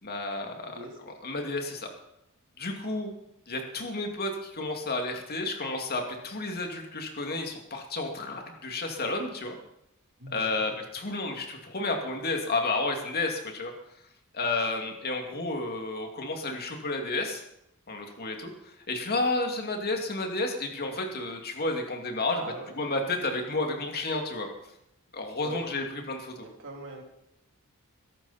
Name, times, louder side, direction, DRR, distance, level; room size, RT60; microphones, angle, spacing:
voice 1, 0.0-0.8 1.1-1.9 2.6-3.1 3.5-9.6 10.3-13.7 14.3-17.4 17.9-22.4 22.8-24.5 25.1-26.5, left 2 dB, 45° left, 2 dB, 2.5 m, -31 dB
voice 2, 10.2-10.8 22.4-22.7 25.4-25.7 26.4-27.0, right 2 dB, 60° right, 0 dB, 3.5 m, -41 dB
21.5 x 12.0 x 4.3 m, 0.80 s
head